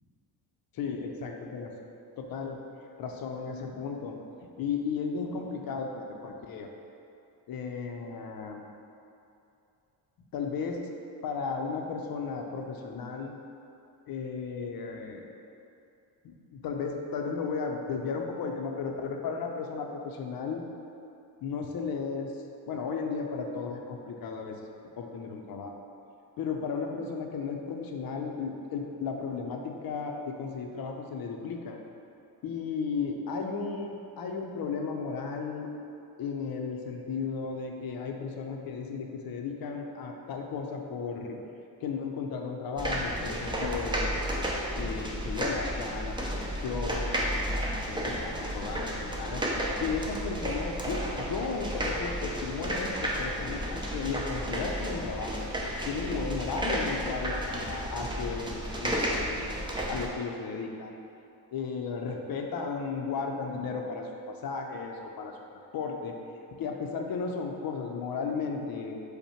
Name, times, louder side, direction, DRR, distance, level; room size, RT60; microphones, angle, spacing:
voice 1, 0.7-1.7 2.2-2.6 3.0-4.2 4.6-6.7 7.5-8.6 10.3-10.8 11.2-13.3 14.1-15.3 16.2-20.6 21.4-22.3 22.7-24.6 25.0-25.8 26.4-31.8 32.4-35.7 36.2-41.4 41.8-44.4 44.8-46.3 46.6-49.4 49.8-55.5 55.9-61.0 61.5-66.1 66.6-69.0, left 5 dB, 55° left, 2 dB, 0.6 m, -34 dB
sound 1, 42.8-60.1, equal, 10° right, 0.6 m, -32 dB
5.4 x 2.2 x 4.4 m, 2.7 s
cardioid pair, 90°, 44 cm